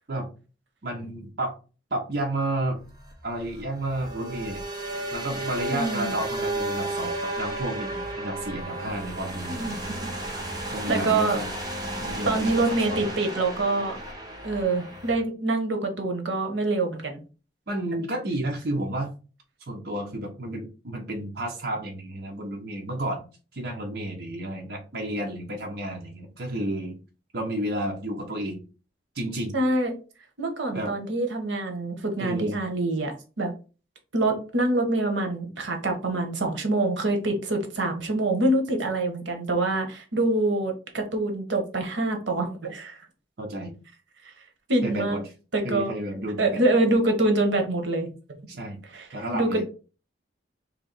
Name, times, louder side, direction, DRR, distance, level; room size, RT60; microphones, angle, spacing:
voice 1, 0.8-1.6 1.9-2.8 3.2-4.6 5.1-9.7 10.7-11.5 12.0-13.1 17.7-19.1 19.7-23.2 23.5-27.0 27.3-28.6 29.1-29.5 30.7-30.9 32.2-32.6 43.4-43.7 44.8-45.2 45.6-46.8 48.5-48.8 49.1-49.6, right 1 dB, 60° right, 1 dB, 0.7 m, -31 dB
sound 1, 2.8-15.2, right 1 dB, 20° right, 0.8 m, -33 dB
voice 2, 5.7-6.1 9.5-9.8 10.9-11.4 12.2-14.0 14.4-17.2 29.5-29.9 30.4-33.5 34.1-43.0 44.7-45.2 45.5-45.9 46.4-48.1 48.9-49.1 49.3-49.6, right 2 dB, 85° right, 4 dB, 0.9 m, -25 dB
3.2 x 2.8 x 3.9 m, 0.35 s
head